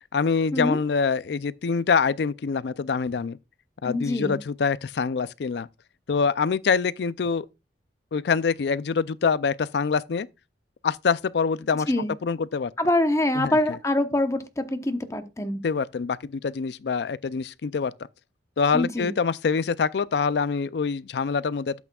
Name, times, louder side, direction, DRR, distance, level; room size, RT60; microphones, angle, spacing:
voice 1, 0.1-3.4 3.8-5.7 6.1-7.5 8.1-10.3 10.8-11.9 12.2-12.7 13.4-13.6 15.6-17.9 18.6-21.7, left 5 dB, 70° left, 0.4 m, -25 dB
voice 2, 3.8-4.4 11.9-12.1 12.8-15.6 18.7-19.1, left 1 dB, 15° left, 0.9 m, -25 dB
12.0 x 8.3 x 2.3 m
head